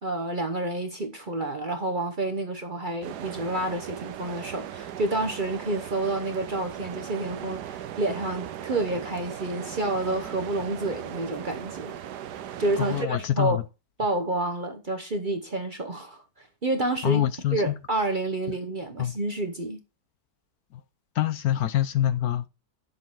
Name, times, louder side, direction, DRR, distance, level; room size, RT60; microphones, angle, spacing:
voice 1, 0.0-12.0 12.6-13.6 14.0-17.2 17.5-19.8, right 2 dB, 40° right, 0.8 m, -29 dB
sound 1, 3.0-13.1, right 10 dB, 75° right, 1.3 m, -38 dB
voice 2, 12.7-13.6 17.0-17.7 19.0-19.1 20.7-20.8 21.1-22.5, left 12 dB, 70° left, 1.1 m, -25 dB
10.0 x 6.9 x 3.7 m
omnidirectional pair, 1.8 m